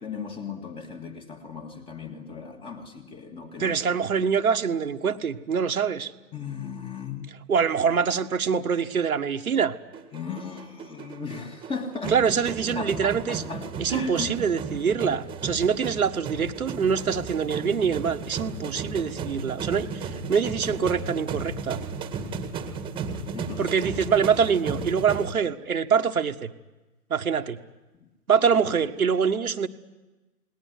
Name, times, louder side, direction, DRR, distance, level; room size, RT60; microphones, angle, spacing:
voice 1, 0.0-3.8 6.3-7.3 10.1-12.2 12.8-14.4 23.3-23.7 28.0-28.1, left 5 dB, 10° left, 6 dB, 2.0 m, -36 dB
voice 2, 3.6-6.1 7.5-9.8 12.1-13.4 13.8-21.8 23.6-26.5 27.1-27.6 28.3-29.7, right 6 dB, 65° right, 6 dB, 1.7 m, -24 dB
sound 1, 9.9-25.3, right 4 dB, 10° right, 1.9 m, -34 dB
29.0 x 19.5 x 9.7 m, 1.2 s
figure-of-eight pair, 125°, 46 cm